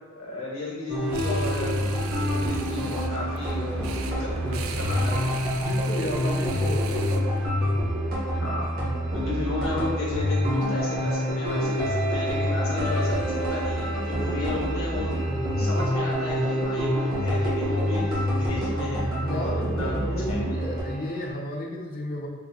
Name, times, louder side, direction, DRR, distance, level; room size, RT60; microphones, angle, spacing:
voice 1, 0.2-5.4 8.3-8.7 9.1-15.1 15.6-20.0 20.3-20.5, left 2 dB, 70° left, -5 dB, 1.3 m, -33 dB
sound 1, 0.9-20.8, equal, 45° right, 1.3 m, -27 dB
sound 2, 1.0-7.5, right 4 dB, 75° right, 0.4 m, -37 dB
sound 3, 1.4-21.3, right 2 dB, 20° right, 0.9 m, -40 dB
voice 2, 5.5-7.3 9.4-9.5 14.1-15.0 19.2-22.3, left 1 dB, 45° left, 0 dB, 0.6 m, -34 dB
5.0 x 2.8 x 2.9 m, 1.3 s
head